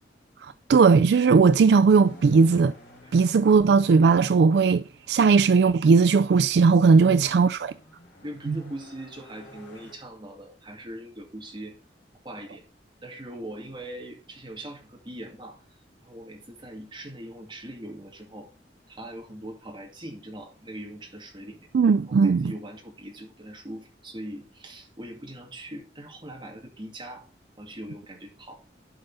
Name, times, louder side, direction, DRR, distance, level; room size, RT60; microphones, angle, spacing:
voice 1, 0.4-2.7 3.1-7.7 8.5-8.6 21.7-22.5, right 5 dB, 65° right, 0.3 m, -18 dB
sound 1, 2.0-5.5 6.6-9.9, equal, 65° left, 2.9 m, -51 dB
voice 2, 8.2-11.8 12.2-12.7 13.0-15.6 16.0-18.5 18.9-21.7 22.1-27.2 27.6-28.6, right 1 dB, 25° right, 2.2 m, -41 dB
11.5 x 5.5 x 4.0 m
head